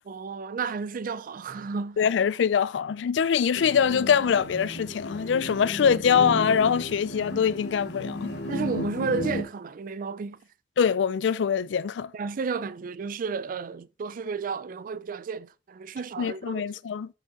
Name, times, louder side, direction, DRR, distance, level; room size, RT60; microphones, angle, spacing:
voice 1, 0.1-2.0 8.5-10.4 12.1-16.6, right 5 dB, 50° right, 0.4 m, -32 dB
voice 2, 2.0-8.3 10.8-12.1 16.2-17.1, left 7 dB, 85° left, 0.4 m, -23 dB
sound 1, 3.5-9.4, left 1 dB, 65° left, 1.0 m, -34 dB
5.2 x 4.9 x 3.9 m
head